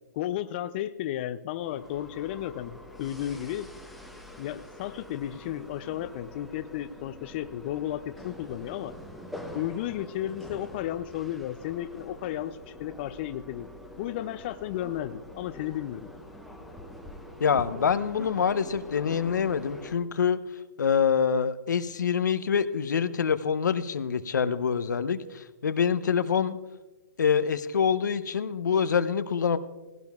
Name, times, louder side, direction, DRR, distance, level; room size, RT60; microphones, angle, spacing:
voice 1, 0.1-3.7 4.4-8.9 9.5-13.7 14.0-16.1, left 12 dB, 35° left, 11 dB, 0.4 m, -33 dB
sound 1, 1.6-20.0, left 1 dB, ahead, 0.8 m, -45 dB
voice 2, 17.4-20.4 20.8-26.6 27.2-29.6, left 7 dB, 80° left, 12 dB, 0.7 m, -25 dB
18.0 x 16.0 x 2.4 m, 1.2 s
hypercardioid pair, 145°, 10 cm